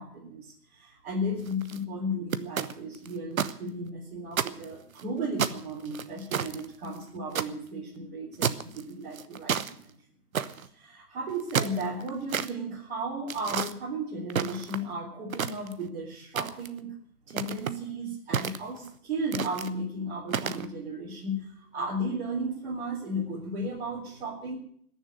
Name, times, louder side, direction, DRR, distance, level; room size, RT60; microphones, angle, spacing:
voice 1, 0.0-9.9 10.5-16.9 17.3-24.6, equal, 40° right, -5 dB, 3.9 m, -35 dB
Short Length Walk Snow, 1.4-1.8 2.3-3.5 3.9-4.0 4.3-5.0 5.4-7.5 8.4-8.8 9.1-9.7 10.3-10.7 11.3-12.5 13.3-13.7 14.3-14.9 15.3-15.9 16.4-16.8 17.3-17.8 18.3-18.9 19.3-19.7 20.3-20.7, right 7 dB, 60° right, 1.1 m, -30 dB
19.5 x 7.3 x 9.8 m, 0.64 s
hypercardioid pair, 165°, 46 cm